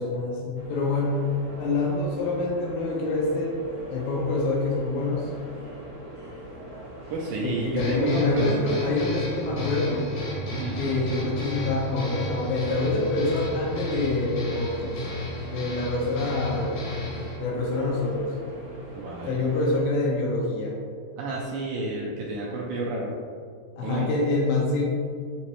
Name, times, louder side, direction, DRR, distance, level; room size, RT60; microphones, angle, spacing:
voice 1, 0.0-3.5 3.9-5.3 7.4-10.1 10.8-15.0 15.5-16.9 17.4-18.3 19.3-20.8 23.8-24.8, left 2 dB, 80° left, -2 dB, 2.3 m, -26 dB
sound 1, 0.5-19.8, right 1 dB, 60° right, 1.6 m, -42 dB
voice 2, 7.1-8.9 10.5-10.8 19.0-19.4 21.2-23.1 23.8-24.1, right 3 dB, 85° right, -4 dB, 2.0 m, -30 dB
sound 2, 7.8-17.4, left 2 dB, 60° left, 2.3 m, -33 dB
6.0 x 2.8 x 3.0 m, 2.1 s
omnidirectional pair, 4.4 m